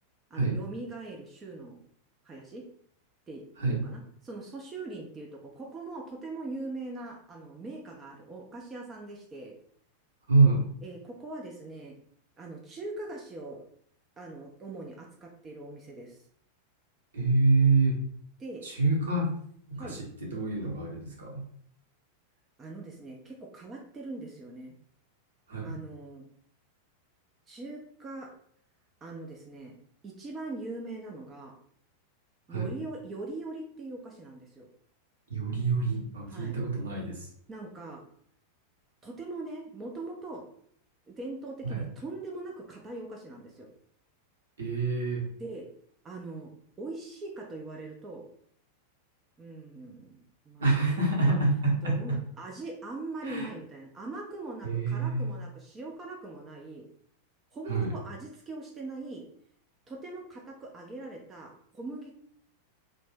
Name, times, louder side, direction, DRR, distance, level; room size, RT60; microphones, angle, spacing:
voice 1, 0.3-1.8 2.2-2.6 3.3-9.5 10.8-11.9 12.4-13.6 14.2-16.2 18.4-18.6 19.8-20.0 22.6-24.7 25.6-26.2 27.5-28.3 29.0-29.8 30.0-31.5 32.5-34.7 36.3-36.6 37.5-38.0 39.0-40.4 41.1-43.7 45.4-45.7 46.0-46.5 46.8-48.3 49.4-50.7 51.0-51.4 51.8-56.8 57.5-59.2 59.9-62.2, right 2 dB, 20° right, -1 dB, 0.5 m, -41 dB
voice 2, 10.3-10.7 17.1-18.0 18.6-19.3 19.7-21.4 25.5-25.7 32.5-32.7 35.3-37.3 41.6-41.8 44.6-45.2 50.6-52.2 53.2-53.5 54.6-55.3 57.7-57.9, right 3 dB, 65° right, -2 dB, 0.9 m, -26 dB
2.5 x 2.1 x 3.3 m, 0.62 s
figure-of-eight pair, 90°, 0 cm